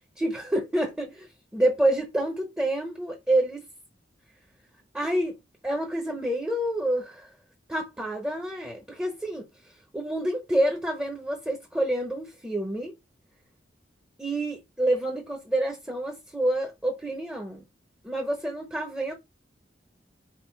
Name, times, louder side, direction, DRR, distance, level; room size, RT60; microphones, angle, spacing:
voice 1, 0.2-3.6 4.9-5.4 5.6-7.3 7.7-12.9 14.2-17.6 18.0-19.1, right 1 dB, 10° right, 0.9 m, -28 dB
4.4 x 2.4 x 4.5 m
head